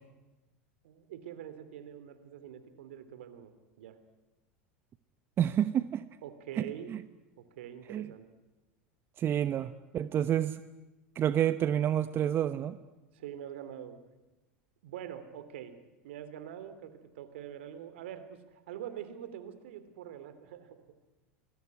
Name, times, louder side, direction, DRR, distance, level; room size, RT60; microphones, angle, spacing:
voice 1, 0.8-3.5 3.8-4.0 6.2-6.9 7.4-8.3 13.1-14.0 14.8-15.7 16.0-20.8, right 10 dB, 70° right, 12 dB, 3.1 m, -44 dB
voice 2, 5.4-6.1 6.6-7.0 7.9-8.1 9.2-10.6 11.1-12.8, right 10 dB, 35° right, 12 dB, 1.0 m, -29 dB
25.5 x 21.0 x 9.7 m, 1.1 s
hypercardioid pair, 90°, 6 cm